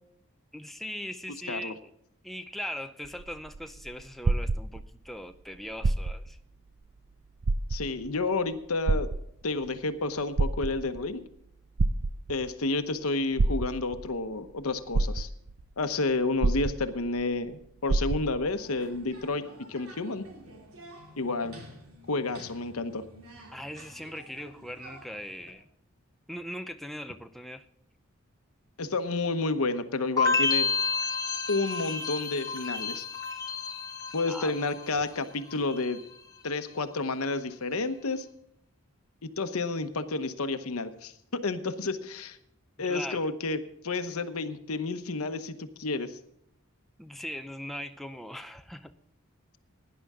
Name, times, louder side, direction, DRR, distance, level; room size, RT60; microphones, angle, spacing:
voice 1, 0.5-1.9 2.2-6.4 23.5-25.7 26.3-27.6 34.3-34.6 42.9-43.2 47.0-48.9, equal, ahead, 7 dB, 0.5 m, -40 dB
sound 1, 3.0-5.1 5.7-6.4 6.8-6.9 7.4-8.1 8.9-9.7 10.2-11.1 11.8-12.5 13.4-14.1 14.6-14.7 14.9-15.7 16.4-17.2 17.5-17.6 17.9-18.5 19.2-19.3, right 3 dB, 50° right, 0.5 m, -27 dB
voice 2, 7.7-9.1 9.4-11.2 12.3-15.3 15.8-20.2 21.2-21.6 22.1-23.0 28.8-30.7 31.5-33.0 34.1-36.0 36.4-38.3 39.2-42.4 42.8-43.6 43.8-46.2, left 3 dB, 80° left, 10 dB, 1.0 m, -30 dB
sound 2, 18.6-25.5, right 1 dB, 80° right, 3.0 m, -50 dB
sound 3, 30.2-35.2 35.5-36.1, left 4 dB, 15° left, 1.3 m, -30 dB
17.0 x 10.5 x 3.6 m, 0.73 s
head